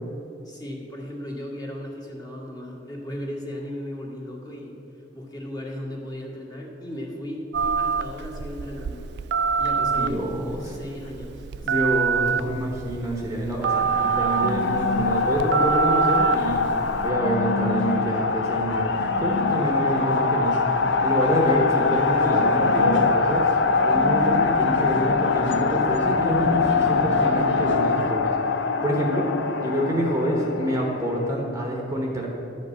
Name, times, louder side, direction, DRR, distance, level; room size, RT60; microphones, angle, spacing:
voice 1, 0.4-4.8 5.1-9.1 9.6-12.6, left 1 dB, 20° left, -2 dB, 1.8 m, -36 dB
Telephone, 7.5-17.1, right 6 dB, 65° right, 0.3 m, -26 dB
voice 2, 10.0-10.7 11.6-16.6 17.0-23.6 23.8-29.3 29.6-32.3, equal, 15° right, -1 dB, 1.1 m, -27 dB
sound 1, 13.6-31.3, left 4 dB, 80° left, 0.7 m, -23 dB
11.5 x 5.3 x 8.4 m, 3.0 s
head